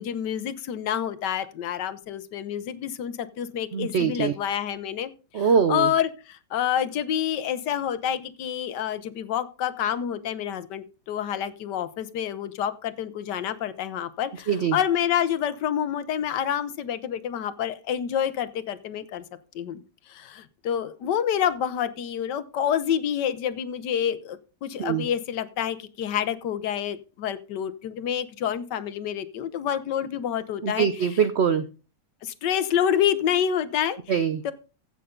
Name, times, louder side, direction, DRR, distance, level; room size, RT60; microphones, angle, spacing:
voice 1, 0.0-19.2 19.5-30.9 32.2-34.0 34.4-34.5, left 9 dB, 75° left, 14 dB, 1.4 m, -28 dB
voice 2, 3.7-4.3 5.3-5.9 14.5-14.8 24.8-25.1 30.6-31.7 34.1-34.4, right 7 dB, 75° right, 11 dB, 0.6 m, -23 dB
15.5 x 6.7 x 3.8 m, 0.35 s
omnidirectional pair, 1.9 m